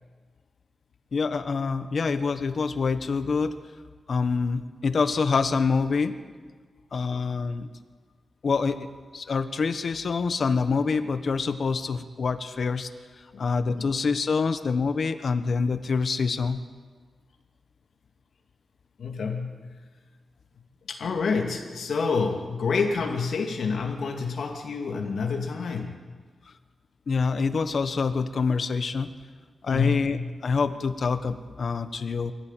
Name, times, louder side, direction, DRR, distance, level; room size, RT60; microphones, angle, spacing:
voice 1, 1.1-3.5 4.1-6.1 6.9-7.7 8.4-8.9 9.1-12.9 13.4-16.6 27.1-29.1 29.6-30.2 30.4-32.3, left 4 dB, 50° left, 10 dB, 1.3 m, -26 dB
voice 2, 19.0-19.8 20.9-26.0 29.7-30.2, left 5 dB, 70° left, 1 dB, 2.5 m, -28 dB
25.0 x 16.0 x 9.2 m, 1.5 s
wide cardioid pair, 170°, 0 cm